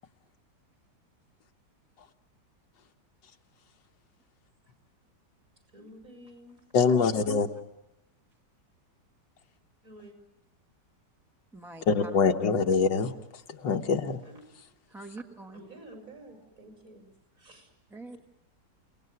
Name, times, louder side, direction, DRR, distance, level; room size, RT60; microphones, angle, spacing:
voice 1, 5.7-6.6 9.8-10.1 14.2-14.4 15.5-17.1 17.3-17.7, right 1 dB, 45° right, 3 dB, 6.3 m, -50 dB
voice 2, 6.7-7.5 11.9-13.1 13.5-14.2, left 5 dB, 90° left, 5 dB, 2.0 m, -24 dB
voice 3, 11.5-12.2 14.9-15.6 17.9-18.3, right 2 dB, ahead, 3 dB, 1.2 m, -44 dB
29.5 x 18.5 x 9.5 m, 0.95 s
omnidirectional pair, 1.9 m